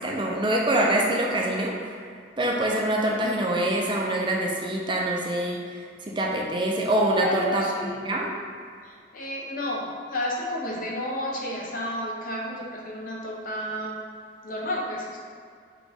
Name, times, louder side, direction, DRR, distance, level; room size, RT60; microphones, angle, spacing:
voice 1, 0.0-1.7 2.4-8.3, right 1 dB, 25° right, -2 dB, 0.5 m, -25 dB
voice 2, 7.1-8.0 8.8-14.0 14.4-15.2, left 1 dB, 50° left, -3 dB, 0.8 m, -31 dB
6.0 x 2.4 x 3.5 m, 2.2 s
head